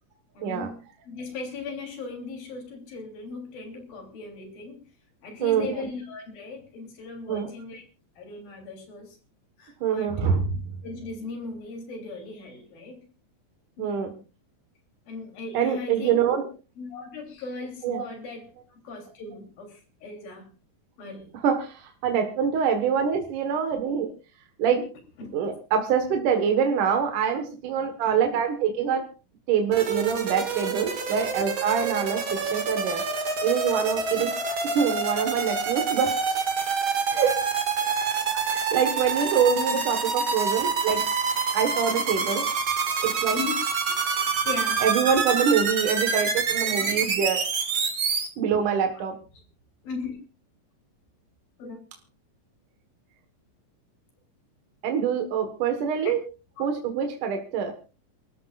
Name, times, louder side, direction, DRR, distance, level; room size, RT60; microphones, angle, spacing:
voice 1, 0.3-4.8 5.2-7.8 8.2-9.2 9.6-10.2 10.8-13.0 13.8-14.2 15.1-16.3 16.8-20.5 21.0-21.3 25.2-25.4 32.3-32.7 34.0-34.2 34.5-34.6 43.3-43.6 44.4-44.8 46.6-47.0 48.9-49.0 49.8-50.2 51.6-51.9 56.0-56.1, left 4 dB, 80° left, 3 dB, 5.1 m, -38 dB
voice 2, 5.4-5.9 7.3-7.5 9.8-10.7 13.8-14.1 15.5-16.5 17.8-18.0 21.4-24.1 24.6-24.9 25.3-29.1 29.5-33.0 33.4-34.3 34.7-36.4 37.1-37.4 38.5-41.0 41.5-42.5 43.0-43.4 44.8-47.4 48.4-49.2 54.8-56.2 56.6-57.7, right 7 dB, 65° right, 4 dB, 2.8 m, -25 dB
sound 1, 29.7-48.3, right 5 dB, 45° right, 2.3 m, -27 dB
28.5 x 14.0 x 2.4 m, 0.33 s
omnidirectional pair, 4.1 m